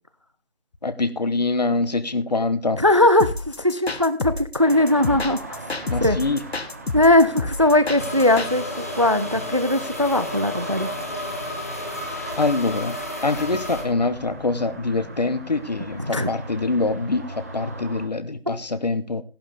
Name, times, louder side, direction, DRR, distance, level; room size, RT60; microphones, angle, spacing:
voice 1, 0.8-2.8 5.9-6.4 12.4-13.0 13.2-19.2, left 3 dB, 40° left, 13 dB, 0.9 m, -24 dB
voice 2, 2.8-5.4 6.0-6.2 6.9-10.9 16.1-16.3, left 1 dB, 30° right, 13 dB, 0.5 m, -19 dB
sound 1, 3.2-8.5, left 3 dB, 75° left, 1.4 m, -29 dB
sound 2, 4.6-18.1, right 2 dB, 15° right, 0.9 m, -39 dB
sound 3, 8.0-13.8, left 1 dB, 15° left, 0.8 m, -32 dB
13.5 x 11.5 x 3.3 m, 0.30 s
figure-of-eight pair, 165°, 32 cm